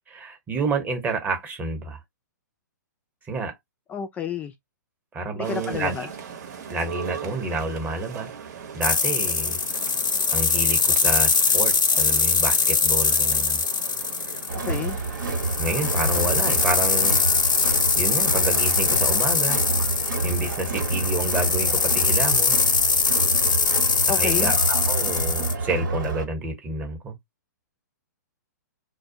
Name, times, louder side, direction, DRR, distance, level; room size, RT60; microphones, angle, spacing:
voice 1, 0.1-2.0 3.3-3.5 5.1-5.9 6.7-8.3 8.7-9.6 10.3-13.6 15.6-17.2 17.9-19.6 20.2-22.5 24.1-27.1, right 2 dB, 15° right, 0.9 m, -29 dB
voice 2, 3.9-4.5 5.3-6.1 14.5-15.0 24.1-24.5, left 7 dB, 15° left, 0.3 m, -30 dB
sound 1, 5.4-19.0, right 7 dB, 60° right, 0.9 m, -40 dB
sound 2, 8.8-25.5, left 5 dB, 85° left, 0.5 m, -22 dB
Crowd, 14.5-26.2, right 3 dB, 80° right, 1.1 m, -28 dB
2.2 x 2.1 x 2.7 m
hypercardioid pair, 130°, 10 cm